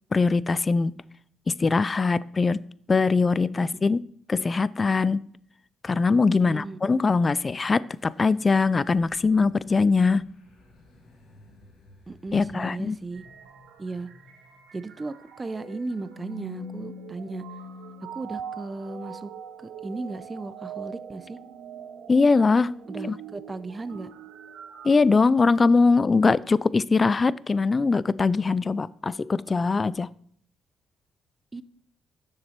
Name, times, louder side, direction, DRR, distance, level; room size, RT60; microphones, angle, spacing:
voice 1, 0.1-0.9 1.5-2.6 2.9-4.0 4.3-5.2 5.8-10.3 12.3-13.0 22.1-22.8 23.0-23.1 24.8-30.1, left 4 dB, 30° left, 0.3 m, -22 dB
voice 2, 6.4-6.8 12.1-13.3 13.8-14.1 14.7-17.4 18.1-19.3 19.6-21.4 22.9-24.1 31.5-31.6, right 3 dB, 25° right, 0.6 m, -36 dB
sound 1, 7.9-13.9, left 1 dB, 75° left, 2.5 m, -56 dB
sound 2, 13.1-24.9, right 4 dB, 90° right, 1.4 m, -42 dB
10.0 x 6.7 x 4.4 m
cardioid pair, 90°, 0 cm